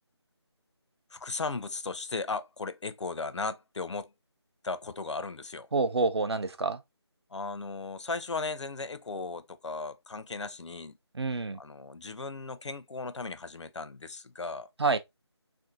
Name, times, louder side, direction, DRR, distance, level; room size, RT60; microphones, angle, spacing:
voice 1, 1.1-4.1 4.6-5.7 7.3-11.0 11.5-14.7, left 3 dB, 85° left, 0.5 m, -36 dB
voice 2, 5.7-6.8 11.1-11.6 14.8-15.0, right 4 dB, 65° right, 0.5 m, -27 dB
3.5 x 2.6 x 2.5 m
figure-of-eight pair, 175°, 15 cm